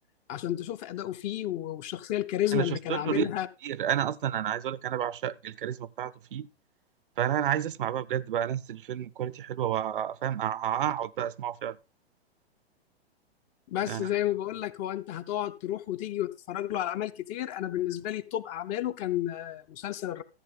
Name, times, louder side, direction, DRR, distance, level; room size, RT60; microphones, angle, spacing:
voice 1, 0.3-3.5 13.7-20.2, left 12 dB, 25° left, 0.5 m, -31 dB
voice 2, 2.5-3.3 3.6-6.5 7.2-11.8 13.9-14.1, right 10 dB, 55° right, 0.6 m, -30 dB
14.0 x 7.8 x 3.9 m
figure-of-eight pair, 110°, 32 cm